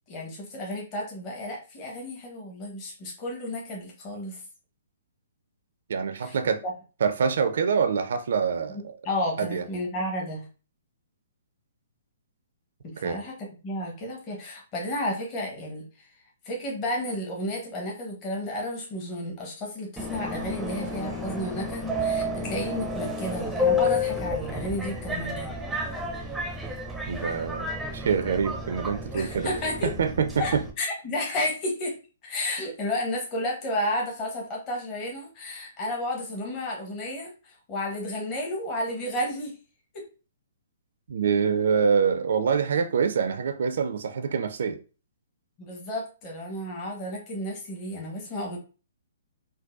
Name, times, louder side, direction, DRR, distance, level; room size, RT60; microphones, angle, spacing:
voice 1, 0.1-4.4 6.2-6.4 6.6-6.7 8.7-10.5 12.8-13.3 13.6-16.2 16.4-25.5 29.1-29.9 30.4-31.9 32.2-39.6 39.9-40.0 45.6-48.6, left 1 dB, 30° left, 1.0 m, -32 dB
voice 2, 5.9-6.6 7.0-8.8 9.4-9.6 13.0-13.2 27.1-27.7 27.9-29.5 29.8-30.6 41.1-44.8, right 6 dB, 60° right, 0.3 m, -25 dB
Subway metro underground, 20.0-30.7, left 2 dB, 5° right, 0.5 m, -31 dB
3.9 x 2.1 x 2.4 m
figure-of-eight pair, 125°, 0 cm